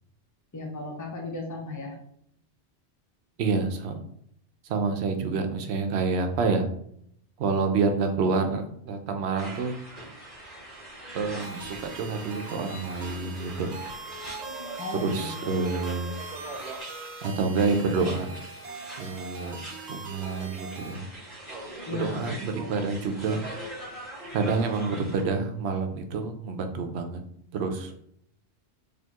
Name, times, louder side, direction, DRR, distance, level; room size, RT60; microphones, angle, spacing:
voice 1, 0.5-2.0 14.8-15.8 21.9-22.3, left 2 dB, 30° left, 0 dB, 0.3 m, -36 dB
voice 2, 3.4-4.0 4.6-6.7 7.4-9.8 11.1-13.7 14.9-16.1 17.2-18.3 19.0-19.6 19.9-21.1 21.9-23.4 24.3-27.2 27.5-27.9, right 4 dB, 75° right, 6 dB, 0.8 m, -28 dB
sound 1, 9.4-25.2, right 2 dB, 55° left, 1.5 m, -42 dB
sound 2, 11.4-21.0, right 4 dB, 50° right, 0.6 m, -41 dB
4.2 x 2.7 x 2.9 m, 0.69 s
omnidirectional pair, 1.2 m